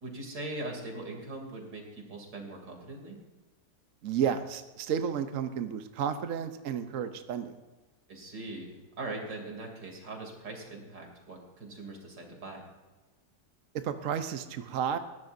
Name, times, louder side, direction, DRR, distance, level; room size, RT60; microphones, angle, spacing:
voice 1, 0.0-3.2 8.1-12.6, right 2 dB, 80° right, 1 dB, 3.7 m, -41 dB
voice 2, 4.0-7.6 13.7-15.0, right 8 dB, 55° right, 8 dB, 1.0 m, -32 dB
20.0 x 16.5 x 2.7 m, 1.2 s
omnidirectional pair, 1.9 m